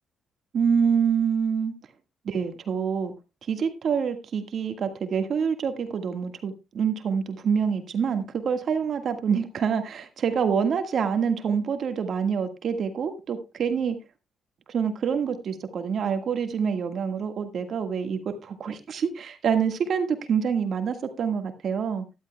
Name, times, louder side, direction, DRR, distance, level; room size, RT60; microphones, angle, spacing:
voice 1, 0.5-1.7 2.2-3.1 3.5-14.0 14.7-22.0, right 6 dB, 60° right, 7 dB, 1.6 m, -26 dB
13.5 x 12.0 x 2.2 m, 0.27 s
cardioid pair, 90°, 0 cm